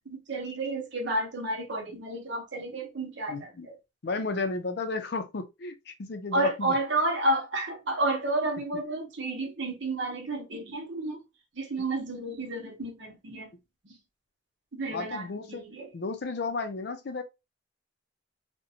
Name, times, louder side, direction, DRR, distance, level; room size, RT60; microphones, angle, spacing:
voice 1, 0.1-3.7 6.3-11.2 11.6-13.5 13.8-13.9 14.7-15.9, right 2 dB, 75° right, 0.9 m, -31 dB
voice 2, 3.3-3.7 4.0-6.8 14.9-15.7 15.9-17.2, left 3 dB, 60° left, 0.5 m, -33 dB
2.5 x 2.1 x 2.7 m
head